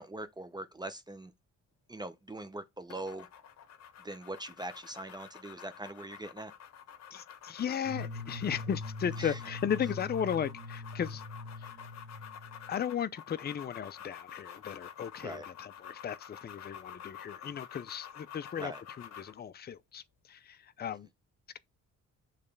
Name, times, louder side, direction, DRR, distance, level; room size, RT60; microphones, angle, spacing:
voice 1, 0.0-1.3 1.9-3.3 4.0-6.5 9.2-9.4 15.2-15.5 18.6-18.8, right 1 dB, 15° right, 0.7 m, -42 dB
sound 1, 2.9-19.4, left 9 dB, 60° left, 1.1 m, -49 dB
voice 2, 7.1-11.2 11.6-11.7 12.7-18.7 19.0-21.1, left 8 dB, 35° left, 0.6 m, -36 dB
sound 2, 7.8-13.0, left 2 dB, 35° right, 1.5 m, -42 dB
6.7 x 3.2 x 5.3 m
cardioid pair, 90°, 30 cm